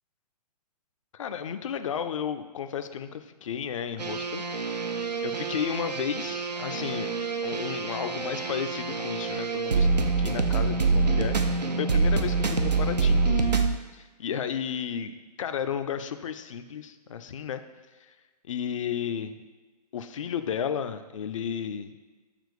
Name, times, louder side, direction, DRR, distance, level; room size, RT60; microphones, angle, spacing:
voice 1, 1.1-4.4 5.2-7.1 7.4-13.7 13.9-17.6 18.0-18.1 18.4-19.4 19.9-21.9, left 8 dB, 50° left, 9 dB, 0.4 m, -33 dB
sound 1, 4.0-13.8, right 4 dB, 85° right, 0.5 m, -26 dB
6.6 x 2.9 x 5.0 m, 1.3 s
figure-of-eight pair, 120°, 21 cm